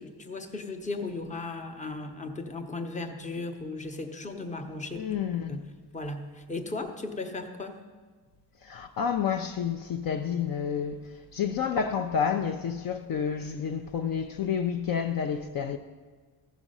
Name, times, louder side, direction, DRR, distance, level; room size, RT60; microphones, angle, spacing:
voice 1, 0.0-5.1 5.5-5.7 5.9-7.8, left 3 dB, 15° left, 0.8 m, -36 dB
voice 2, 4.9-5.6 8.6-15.8, left 7 dB, 55° left, 0.5 m, -30 dB
15.0 x 6.1 x 5.4 m
cardioid pair, 135°, 42 cm